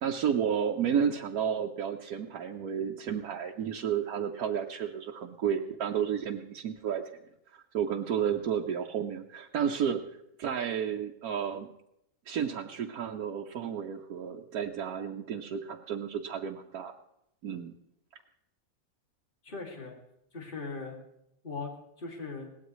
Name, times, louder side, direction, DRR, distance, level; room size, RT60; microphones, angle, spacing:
voice 1, 0.0-7.0 7.5-10.0 10.4-11.7 12.3-16.9 17.4-17.8, right 8 dB, 90° right, 1 dB, 1.3 m, -32 dB
voice 2, 19.4-19.9 20.3-21.0 21.4-22.5, left 4 dB, 35° left, 0 dB, 2.6 m, -39 dB
21.0 x 17.5 x 3.1 m, 0.78 s
omnidirectional pair, 1.5 m